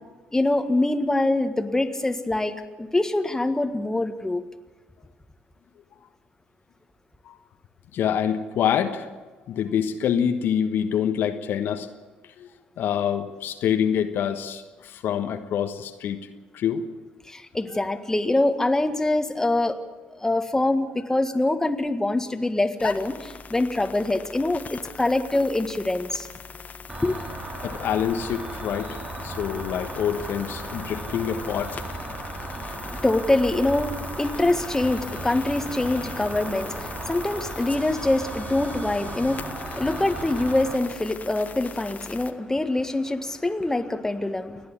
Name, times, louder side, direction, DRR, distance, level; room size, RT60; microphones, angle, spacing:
voice 1, 0.3-4.4 17.3-19.8 20.1-26.3 27.0-27.2 32.7-44.6, left 2 dB, 10° left, 7 dB, 1.7 m, -24 dB
voice 2, 7.9-9.1 9.5-11.9 12.4-12.5 12.8-16.2 16.5-16.9 27.6-31.8, left 8 dB, 60° left, 7 dB, 1.3 m, -26 dB
sound 1, 22.8-42.3, left 5 dB, 40° left, 1.4 m, -41 dB
Cricket, 26.9-40.7, right 2 dB, 30° right, 7.6 m, -36 dB
29.5 x 10.5 x 8.6 m, 1.3 s
hypercardioid pair, 55°, 4 cm